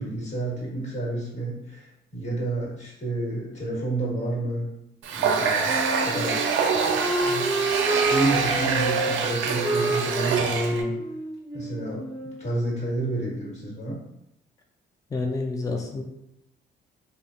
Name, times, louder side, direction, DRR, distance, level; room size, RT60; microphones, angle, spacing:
voice 1, 0.0-4.7 5.1-5.8 6.0-7.5 8.1-11.0 11.5-12.0 12.4-14.0, right 2 dB, 35° left, -5 dB, 1.5 m, -30 dB
Water tap faucet, 5.0-10.8, right 5 dB, 75° right, 0.4 m, -25 dB
Wind instrument woodwind instrument, 5.6-12.4, right 2 dB, ahead, 1.0 m, -29 dB
voice 2, 15.1-16.0, left 3 dB, 15° left, 3 dB, 0.3 m, -28 dB
3.3 x 2.0 x 2.5 m, 0.82 s
cardioid pair, 90°, 20 cm